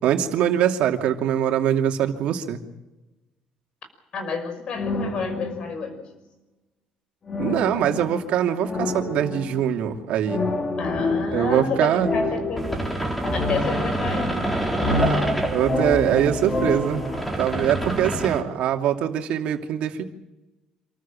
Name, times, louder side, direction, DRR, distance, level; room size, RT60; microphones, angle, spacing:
voice 1, 0.0-2.6 7.4-10.4 11.3-12.1 14.9-17.1 17.4-20.0, right 10 dB, 70° right, 4 dB, 2.7 m, -23 dB
voice 2, 4.1-6.0 10.8-12.8 13.3-14.4, left 4 dB, 45° left, 8 dB, 5.7 m, -30 dB
sound 1, 4.7-6.0 7.3-9.8 10.2-14.4 14.7-17.3, left 2 dB, 30° left, 3.6 m, -28 dB
sound 2, 12.6-18.4, right 1 dB, 5° left, 3.5 m, -27 dB
27.0 x 14.0 x 8.9 m, 1.0 s
cardioid pair, 135°, 2 cm